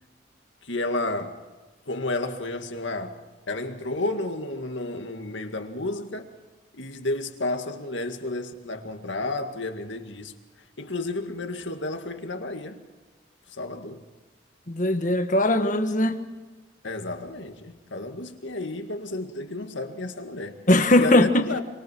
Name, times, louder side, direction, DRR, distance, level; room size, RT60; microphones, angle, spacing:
voice 1, 0.6-1.4 1.9-3.2 3.5-6.3 6.7-10.3 10.8-12.8 13.5-14.1 16.8-20.7 21.0-21.6, left 2 dB, 80° left, 2.1 m, -31 dB
voice 2, 14.7-16.2 20.7-21.5, left 1 dB, 40° left, 1.5 m, -20 dB
27.0 x 25.5 x 4.7 m
head